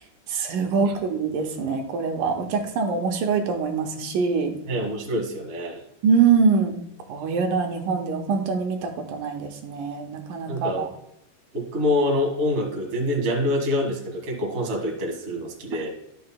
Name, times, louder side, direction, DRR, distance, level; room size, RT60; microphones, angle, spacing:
voice 1, 0.3-4.5 6.0-6.8 7.1-10.9, right 5 dB, 85° right, 3 dB, 2.6 m, -24 dB
voice 2, 4.7-5.8 10.5-10.9 11.5-15.9, left 1 dB, 30° right, -1 dB, 1.4 m, -26 dB
11.5 x 6.6 x 2.2 m, 0.79 s
omnidirectional pair, 3.8 m